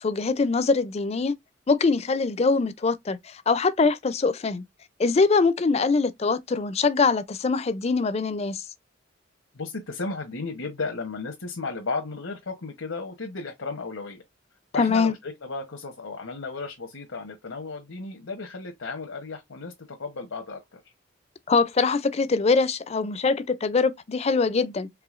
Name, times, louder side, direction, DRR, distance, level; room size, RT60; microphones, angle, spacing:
voice 1, 0.0-1.3 1.7-4.6 5.0-8.6 14.8-15.1 21.5-24.9, left 4 dB, 30° left, 0.4 m, -23 dB
voice 2, 9.5-14.2 14.7-20.8, left 3 dB, 90° left, 1.0 m, -34 dB
4.8 x 3.3 x 2.4 m
head